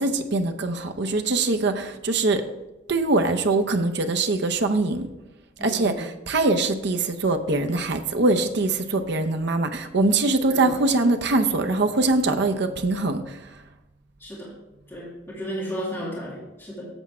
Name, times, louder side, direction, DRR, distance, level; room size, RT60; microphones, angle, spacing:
voice 1, 0.0-2.4 2.9-5.1 5.6-13.4, right 2 dB, 60° right, 6 dB, 0.7 m, -23 dB
voice 2, 5.6-6.0 10.5-10.6 14.2-14.5 14.9-16.9, equal, 10° left, -7 dB, 2.1 m, -33 dB
8.0 x 7.2 x 4.3 m, 1.0 s
head